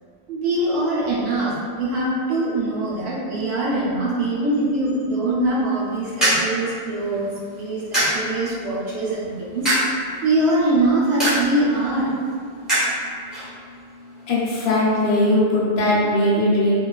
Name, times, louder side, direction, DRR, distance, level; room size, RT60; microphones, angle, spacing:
voice 1, 0.3-9.7 10.2-12.1, right 2 dB, 85° right, -7 dB, 1.0 m, -23 dB
sound 1, 5.7-15.1, right 1 dB, ahead, 0.9 m, -27 dB
voice 2, 14.3-16.8, left 1 dB, 80° left, -4 dB, 0.8 m, -19 dB
2.4 x 2.2 x 2.3 m, 2.1 s
omnidirectional pair, 1.0 m